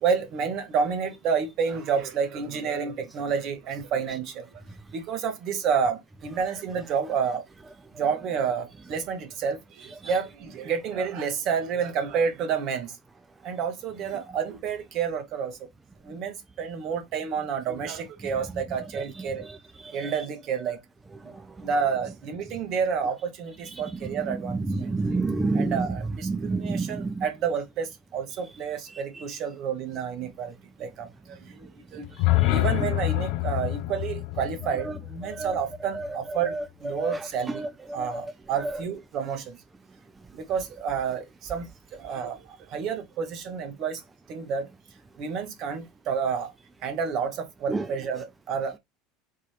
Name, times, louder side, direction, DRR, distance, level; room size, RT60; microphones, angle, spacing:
voice 1, 0.0-4.5 4.9-7.4 8.0-13.0 13.4-15.6 16.0-19.4 19.9-20.8 21.6-24.9 25.5-32.1 32.5-36.5 36.8-37.6 37.9-39.6 40.3-41.7 42.0-44.0 44.3-44.7 45.2-46.5 46.8-48.7, right 6 dB, 50° right, 1.0 m, -29 dB
voice 2, 24.8-25.8 26.2-27.1 35.4-35.5 36.5-36.6 37.0-37.2 37.6-37.7 47.7-47.8, right 3 dB, 15° right, 0.4 m, -27 dB
sound 1, 32.0-36.1, left 17 dB, 60° left, 0.4 m, -27 dB
3.8 x 2.6 x 3.1 m
figure-of-eight pair, 70°, 0 cm